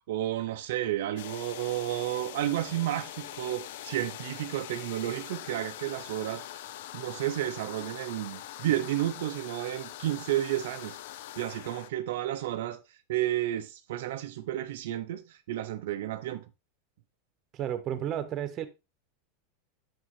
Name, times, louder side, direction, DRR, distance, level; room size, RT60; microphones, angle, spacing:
voice 1, 0.1-6.6 6.9-11.0 11.4-16.4, right 13 dB, 75° right, 0.5 m, -32 dB
sound 1, 1.2-11.9, left 13 dB, 70° left, 0.4 m, -43 dB
voice 2, 17.5-18.7, right 10 dB, 35° right, 1.1 m, -32 dB
6.8 x 6.2 x 3.2 m
supercardioid pair, 125°, 0 cm